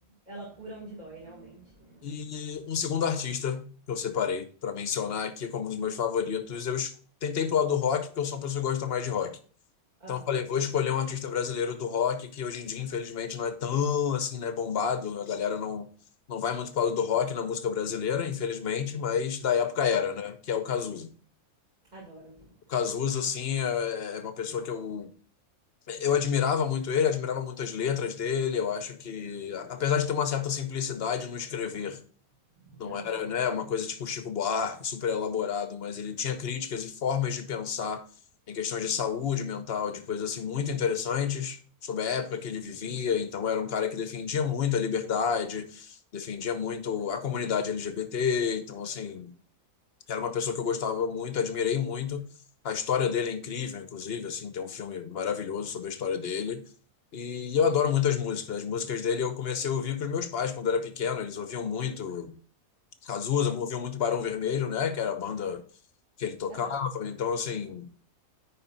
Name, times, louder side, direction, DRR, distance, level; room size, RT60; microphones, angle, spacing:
voice 1, 0.1-2.7 10.0-10.4 21.9-22.6 32.6-33.3 66.5-66.8, right 2 dB, 30° right, 2.2 m, -46 dB
voice 2, 2.0-6.9 7.2-9.4 10.1-15.9 16.3-21.1 22.7-25.1 25.9-32.0 32.8-38.0 38.5-49.3 50.1-52.2 52.6-56.6 57.1-62.3 63.0-65.6 66.2-67.9, left 7 dB, 50° left, 1.0 m, -29 dB
10.0 x 4.4 x 4.0 m
omnidirectional pair, 1.5 m